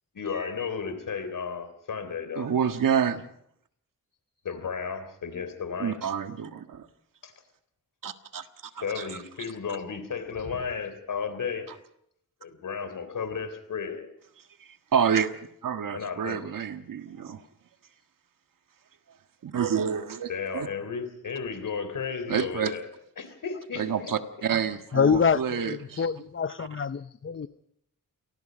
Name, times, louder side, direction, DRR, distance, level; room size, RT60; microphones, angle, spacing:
voice 1, 0.1-2.5 4.5-6.0 8.8-11.7 12.4-14.1 15.9-16.4 20.3-24.5 26.0-26.1, left 6 dB, 70° left, 3.7 m, -34 dB
voice 2, 2.4-3.2 5.8-6.9 8.0-8.4 8.8-9.1 14.9-15.3 15.6-17.4 19.4-20.7 22.3-22.7 23.8-26.0 26.6-26.7, right 7 dB, 70° right, 1.6 m, -28 dB
voice 3, 24.9-27.5, left 6 dB, 35° left, 0.7 m, -26 dB
28.0 x 19.5 x 5.3 m
cardioid pair, 75°, 34 cm